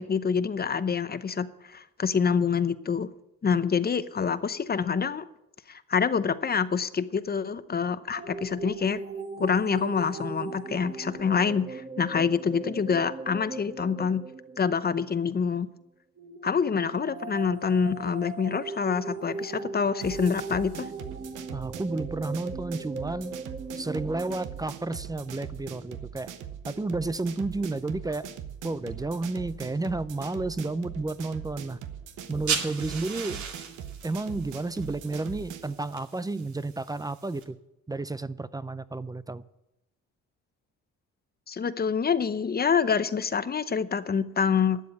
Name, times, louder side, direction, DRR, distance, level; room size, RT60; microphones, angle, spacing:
voice 1, 0.0-3.1 3.4-5.2 5.7-9.0 9.4-14.2 14.6-15.7 16.4-20.9 41.5-44.8, left 6 dB, 30° left, 13 dB, 0.7 m, -26 dB
sound 1, 8.1-15.3 16.2-24.7, right 4 dB, 30° right, 1.3 m, -39 dB
sound 2, 20.0-35.7, right 9 dB, 85° right, 1.1 m, -41 dB
voice 2, 21.5-23.3 23.8-26.3 26.6-28.3 28.6-31.8 32.3-33.4 34.0-37.6 37.9-39.4, right 2 dB, 15° right, 16 dB, 0.5 m, -31 dB
sound 3, 32.2-37.4, right 6 dB, 70° right, 2.2 m, -37 dB
12.0 x 7.5 x 9.7 m, 0.90 s
cardioid pair, 90°, 30 cm